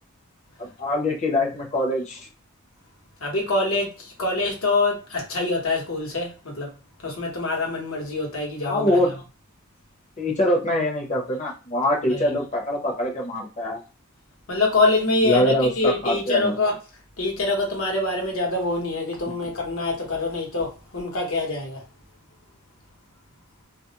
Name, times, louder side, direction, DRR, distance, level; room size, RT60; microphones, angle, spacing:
voice 1, 0.6-2.2 8.6-9.2 10.2-13.8 15.2-16.6, left 1 dB, 35° left, 0.7 m, -23 dB
voice 2, 3.2-6.7 7.0-9.0 12.1-12.3 14.5-16.8 17.2-21.8, left 2 dB, 75° left, 1.0 m, -25 dB
2.4 x 2.1 x 2.8 m
head